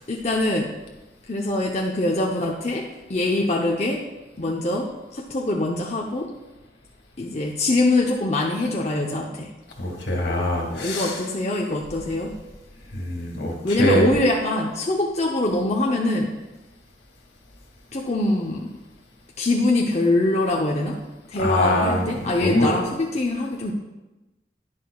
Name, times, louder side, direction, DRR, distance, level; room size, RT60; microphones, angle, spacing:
voice 1, 0.1-0.7 1.3-4.0 4.4-6.3 7.2-9.5 10.7-12.3 13.6-16.3 17.9-18.7 19.4-21.0 21.3-23.7, left 2 dB, 40° left, -1 dB, 0.7 m, -23 dB
voice 2, 9.8-11.1 12.9-14.1 21.4-22.7, left 1 dB, 80° left, 0 dB, 2.1 m, -23 dB
11.0 x 10.5 x 2.3 m, 1.0 s
head